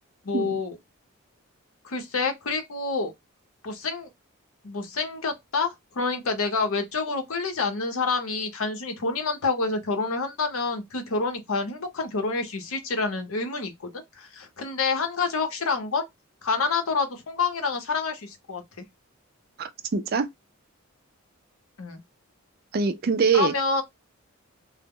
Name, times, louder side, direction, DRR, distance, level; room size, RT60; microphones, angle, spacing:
voice 1, 0.2-0.8 1.8-3.1 3.6-4.1 4.6-16.0 16.4-18.8 21.8-22.0 23.3-23.8, left 4 dB, 75° left, 0.7 m, -28 dB
voice 2, 19.6-20.3 22.7-23.5, right 5 dB, 45° right, 0.3 m, -23 dB
2.0 x 2.0 x 3.5 m
head